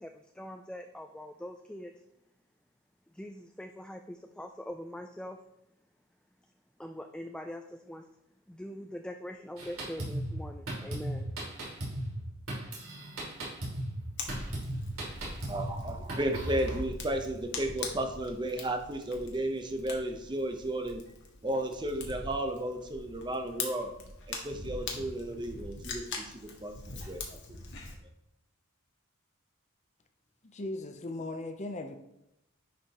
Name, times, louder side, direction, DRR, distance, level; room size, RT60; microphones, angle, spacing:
voice 1, 0.0-1.9 3.1-5.4 6.8-8.0 8.5-11.3, left 1 dB, 5° left, 5 dB, 0.3 m, -43 dB
Drum kit, 9.6-16.8, right 1 dB, 70° right, 2.8 m, -37 dB
Fire, 14.2-27.9, left 3 dB, 60° left, 1.4 m, -42 dB
voice 2, 15.5-21.0 21.4-23.9 24.3-27.6, right 1 dB, 20° right, 4 dB, 0.8 m, -34 dB
voice 3, 30.4-31.9, left 2 dB, 35° left, 7 dB, 0.7 m, -38 dB
10.0 x 5.1 x 3.0 m, 0.86 s
head